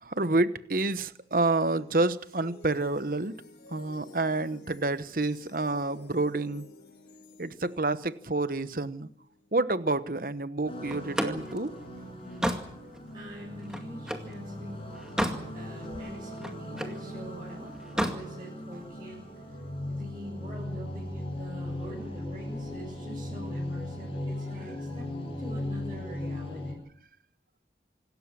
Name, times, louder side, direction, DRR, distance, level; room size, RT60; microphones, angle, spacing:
voice 1, 0.0-3.4 3.7-6.6 7.4-9.1 9.5-11.7, right 2 dB, 50° right, 1.0 m, -28 dB
sound 1, 1.2-10.5, left 2 dB, 70° left, 4.6 m, -53 dB
sound 2, 10.7-26.7, left 1 dB, 30° left, 6.6 m, -38 dB
Slam, 10.9-14.3 14.8-15.5 15.9-17.0 17.8-18.2, equal, 5° right, 2.1 m, -32 dB
voice 2, 12.1-12.5 13.1-15.0 15.5-19.2 19.8-26.8, equal, 25° right, 7.3 m, -44 dB
26.5 x 13.5 x 9.9 m
head